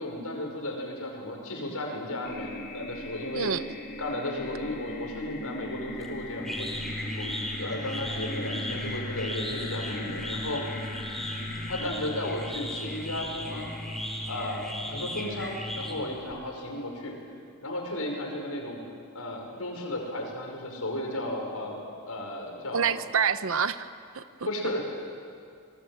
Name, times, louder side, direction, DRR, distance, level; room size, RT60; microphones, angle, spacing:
voice 1, 0.0-3.5 4.0-6.7 7.2-10.6 11.7-13.7 14.3-17.2 17.6-18.8 19.1-22.9 24.5-24.9, left 1 dB, 90° left, 1 dB, 5.6 m, -34 dB
sound 1, 2.2-11.9, left 2 dB, 50° left, 2.5 m, -40 dB
sound 2, 6.0-16.3, left 1 dB, ahead, 3.7 m, -36 dB
voice 2, 22.7-24.5, right 7 dB, 65° right, 12 dB, 0.9 m, -28 dB
26.5 x 20.5 x 8.0 m, 2.3 s
head